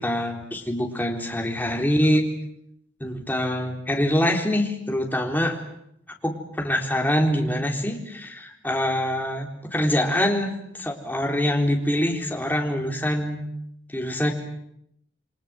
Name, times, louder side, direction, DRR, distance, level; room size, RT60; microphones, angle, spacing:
voice 1, 0.0-2.2 3.0-5.6 6.2-13.4 13.9-14.3, equal, 10° left, 1 dB, 3.9 m, -24 dB
29.0 x 24.0 x 7.7 m, 0.75 s
head